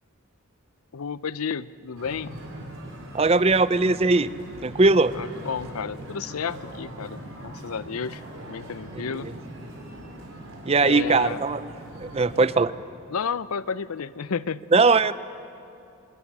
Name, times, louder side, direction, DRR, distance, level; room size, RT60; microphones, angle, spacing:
voice 1, 0.9-2.4 5.1-8.2 8.5-9.3 10.8-11.4 13.1-14.7, left 6 dB, 80° left, 17 dB, 0.6 m, -32 dB
sound 1, 2.0-12.5, right 1 dB, 70° right, 5.5 m, -41 dB
voice 2, 3.1-4.3 4.6-5.1 10.7-11.6 12.0-12.7 14.7-15.1, right 3 dB, 25° right, 15 dB, 0.5 m, -19 dB
25.5 x 22.5 x 8.8 m, 2.6 s
head